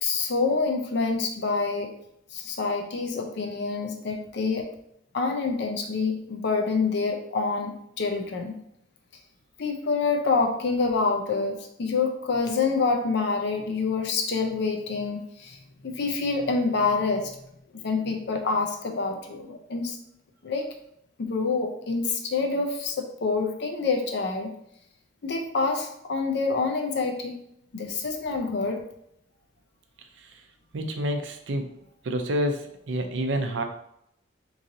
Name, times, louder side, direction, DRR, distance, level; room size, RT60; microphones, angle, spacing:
voice 1, 0.0-1.9 2.3-4.7 5.1-8.6 9.6-17.3 17.8-20.0 20.4-20.7 21.2-24.5 25.2-27.3 27.7-28.8, left 4 dB, 60° left, 3 dB, 0.5 m, -27 dB
voice 2, 30.7-31.7 32.0-33.6, equal, 70° right, 5 dB, 0.5 m, -28 dB
3.1 x 2.7 x 3.8 m, 0.74 s
head